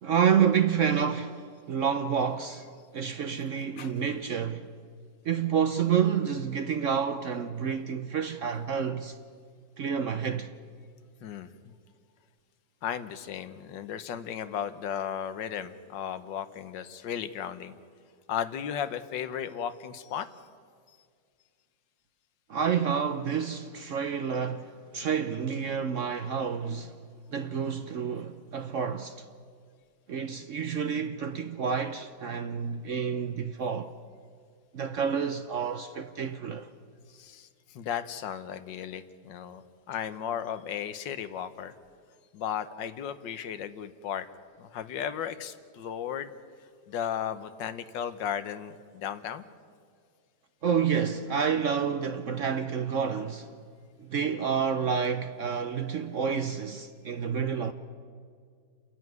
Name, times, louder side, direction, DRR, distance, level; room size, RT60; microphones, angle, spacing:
voice 1, 0.0-2.7 2.9-4.7 5.2-9.2 9.8-10.5 22.5-27.0 27.3-29.3 30.1-33.9 34.7-36.7 50.6-53.5 54.0-57.7, right 7 dB, 60° right, 0.8 m, -29 dB
voice 2, 12.8-17.7 18.3-20.3 37.1-39.6 39.9-41.7 42.3-44.3 44.6-46.3 46.9-49.4, left 9 dB, 80° left, 1.6 m, -35 dB
29.5 x 11.0 x 9.4 m
omnidirectional pair, 1.9 m